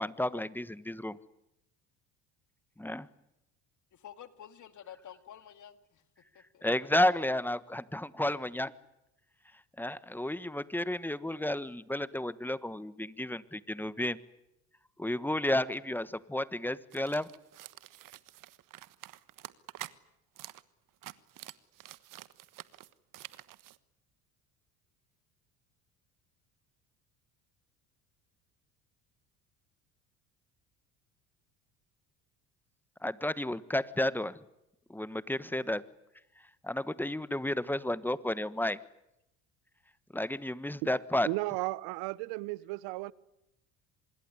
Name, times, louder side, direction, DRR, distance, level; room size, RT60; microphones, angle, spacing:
voice 1, 0.0-1.2 2.8-3.1 6.6-8.7 9.8-14.2 15.0-17.3 33.0-34.4 34.9-35.8 36.6-38.8 40.1-41.3, left 1 dB, 5° left, 1.4 m, -32 dB
voice 2, 3.9-6.0 6.3-6.6, left 10 dB, 50° left, 2.3 m, -50 dB
sound 1, 16.9-19.9 20.3-20.6 20.9-23.8, right 15 dB, 55° right, 1.3 m, -48 dB
voice 3, 41.2-43.1, right 21 dB, 70° right, 1.1 m, -34 dB
26.0 x 21.5 x 9.9 m
hypercardioid pair, 70°, 39 cm